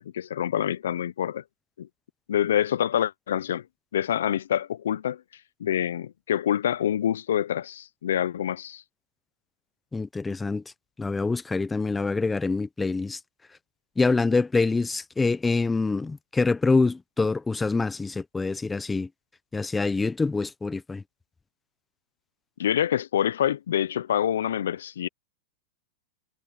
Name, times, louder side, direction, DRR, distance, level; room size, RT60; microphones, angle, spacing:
voice 1, 0.0-1.4 1.8-1.9 2.3-3.6 3.9-5.2 5.6-8.8 22.6-25.1, left 10 dB, 80° left, 0.6 m, -26 dB
voice 2, 9.9-10.6 11.0-13.2 14.0-19.1 19.5-21.0, left 3 dB, 10° left, 0.9 m, -25 dB
hypercardioid pair, 115°, 0 cm